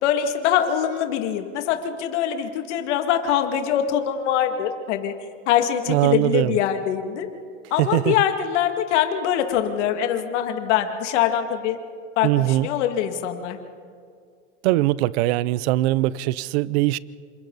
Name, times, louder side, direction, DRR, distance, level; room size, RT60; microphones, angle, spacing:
voice 1, 0.0-5.1 5.5-7.3 7.7-11.8 12.2-13.6, left 10 dB, 65° left, 6 dB, 2.3 m, -23 dB
voice 2, 5.9-6.5 7.8-8.2 12.2-12.7 14.6-17.0, right 17 dB, 60° right, 20 dB, 0.7 m, -21 dB
28.0 x 26.5 x 4.1 m, 2.3 s
supercardioid pair, 145°, 37 cm